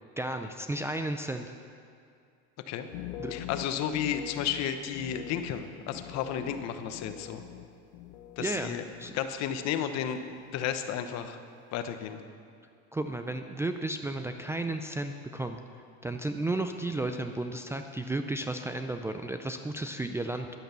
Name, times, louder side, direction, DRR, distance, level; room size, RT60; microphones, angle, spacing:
voice 1, 0.2-1.5 3.2-3.3 8.4-8.7 9.0-9.2 12.9-15.6 16.0-20.5, right 2 dB, 10° right, 6 dB, 0.4 m, -33 dB
sound 1, 2.8-8.7 8.9-9.6 9.9-10.4, left 11 dB, 90° left, 0.9 m, -44 dB
voice 2, 3.3-7.4 8.4-8.8 9.1-11.4 11.7-12.2, left 9 dB, 55° left, 9 dB, 1.0 m, -33 dB
11.0 x 10.0 x 6.8 m, 2.3 s
cardioid pair, 130°, 32 cm